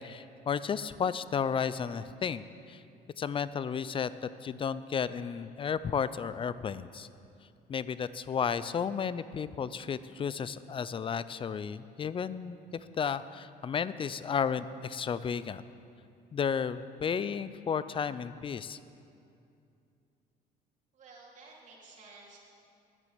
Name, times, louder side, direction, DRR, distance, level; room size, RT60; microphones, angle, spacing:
voice 1, 0.0-2.8 3.2-7.1 7.7-12.6 13.0-15.6 16.3-18.8, left 7 dB, 30° left, 15 dB, 0.4 m, -33 dB
voice 2, 20.9-22.4, right 3 dB, 45° right, -4 dB, 3.3 m, -53 dB
10.5 x 8.3 x 8.0 m, 2.6 s
cardioid pair, 110°, 17 cm